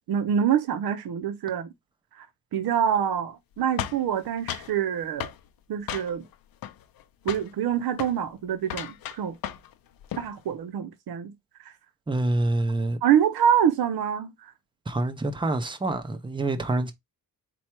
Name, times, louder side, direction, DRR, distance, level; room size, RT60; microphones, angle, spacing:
voice 1, 0.1-1.7 2.2-2.3 2.5-5.3 5.7-6.2 7.2-9.3 10.2-11.3 11.6-11.7 13.0-14.5, right 9 dB, 80° right, 0.7 m, -25 dB
sound 1, 3.8-4.7 5.2-5.4 5.9-6.3 6.6-7.0 7.3-7.5 7.9-8.2 8.6-9.7 10.0-10.3, left 10 dB, 70° left, 0.6 m, -34 dB
voice 2, 12.1-13.0 14.9-16.9, right 2 dB, 15° right, 0.5 m, -26 dB
4.4 x 2.3 x 4.4 m
wide cardioid pair, 160°, 37 cm